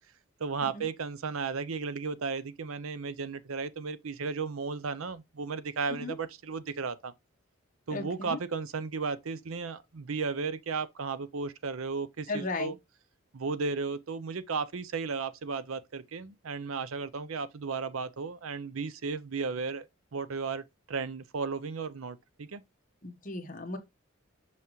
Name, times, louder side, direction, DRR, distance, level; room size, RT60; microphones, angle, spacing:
voice 1, 0.4-7.1 7.9-12.8 13.3-22.6, right 4 dB, 80° right, 0.6 m, -34 dB
voice 2, 7.9-8.4 12.3-12.7 23.0-23.8, left 2 dB, 40° left, 1.2 m, -35 dB
6.3 x 5.6 x 3.1 m
head